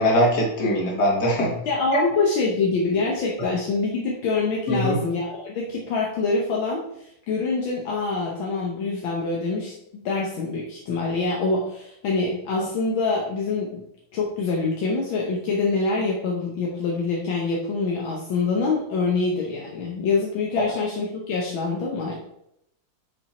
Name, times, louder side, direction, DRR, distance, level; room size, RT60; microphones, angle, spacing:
voice 1, 0.0-1.5 1.9-2.0 4.7-5.0, equal, 55° left, -2 dB, 2.6 m, -21 dB
voice 2, 1.7-13.8 14.1-22.2, left 3 dB, 75° left, -2 dB, 1.8 m, -25 dB
6.6 x 6.3 x 4.4 m, 0.79 s
omnidirectional pair, 2.2 m